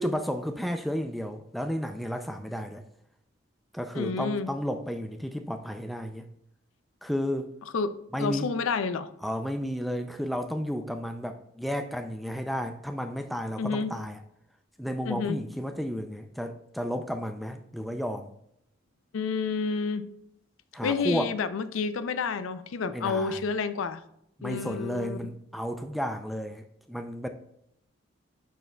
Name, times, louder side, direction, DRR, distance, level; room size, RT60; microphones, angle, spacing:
voice 1, 0.0-2.8 3.7-6.3 7.0-7.5 8.1-8.5 9.2-14.2 14.8-18.3 20.7-21.3 22.9-23.4 24.4-27.3, equal, ahead, 0.3 m, -32 dB
voice 2, 3.9-4.5 7.7-9.1 13.6-13.9 15.0-15.5 19.1-20.1 20.8-24.0 24.4-25.2, left 5 dB, 80° left, 0.4 m, -30 dB
10.5 x 4.6 x 2.2 m
head